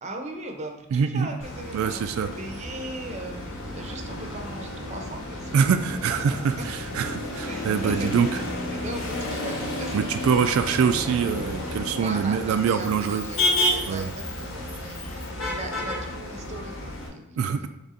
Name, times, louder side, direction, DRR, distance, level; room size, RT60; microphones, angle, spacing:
voice 1, 0.0-2.0 2.3-6.2 6.6-6.7 7.4-8.3 8.7-10.0 12.0-13.4 13.7-17.7, right 2 dB, 35° right, 3 dB, 0.6 m, -39 dB
voice 2, 0.9-1.3 1.7-2.3 5.5-8.4 9.9-13.2 13.9-14.1 17.4-17.7, right 6 dB, 85° right, 8 dB, 0.3 m, -24 dB
Motor vehicle (road), 1.4-17.1, left 1 dB, 70° left, 1.0 m, -31 dB
3.7 x 3.4 x 4.0 m, 0.84 s
head